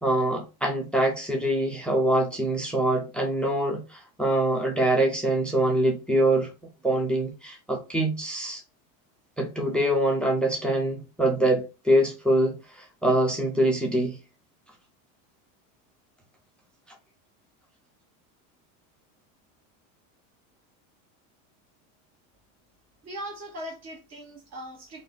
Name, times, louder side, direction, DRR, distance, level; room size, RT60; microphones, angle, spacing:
voice 1, 0.0-6.5 6.8-8.6 9.4-14.2, right 1 dB, ahead, 0.4 m, -24 dB
voice 2, 23.0-25.0, equal, 35° right, 1.5 m, -39 dB
3.5 x 2.5 x 2.4 m
supercardioid pair, 140°, 45 cm